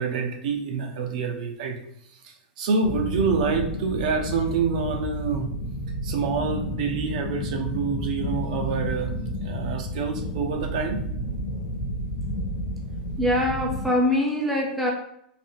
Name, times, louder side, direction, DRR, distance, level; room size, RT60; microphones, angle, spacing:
voice 1, 0.0-1.8 2.2-5.5 6.0-9.1 9.4-11.0, right 5 dB, 50° right, 4 dB, 0.7 m, -27 dB
sound 1, 2.8-13.9, equal, 50° left, 0.8 m, -31 dB
voice 2, 13.2-14.9, left 1 dB, ahead, -2 dB, 0.5 m, -23 dB
3.8 x 2.6 x 3.7 m, 0.73 s
supercardioid pair, 175°, 5 cm